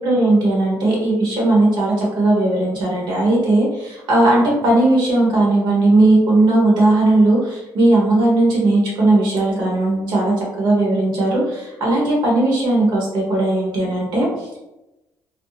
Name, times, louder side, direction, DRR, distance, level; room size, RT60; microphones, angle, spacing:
voice 1, 0.0-14.6, right 2 dB, 75° right, -3 dB, 1.0 m, -17 dB
2.5 x 2.0 x 2.8 m, 0.98 s
cardioid pair, 90°, 8 cm